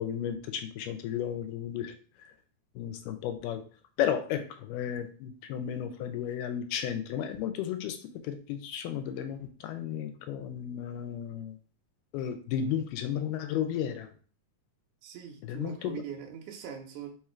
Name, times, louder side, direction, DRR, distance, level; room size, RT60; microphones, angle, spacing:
voice 1, 0.0-1.9 2.8-3.6 4.0-8.0 8.2-11.6 12.1-14.1 15.5-16.0, left 9 dB, 85° left, 8 dB, 2.1 m, -33 dB
voice 2, 15.0-17.1, right 8 dB, 75° right, 2 dB, 2.0 m, -42 dB
5.0 x 2.4 x 4.3 m, 0.41 s
omnidirectional pair, 3.7 m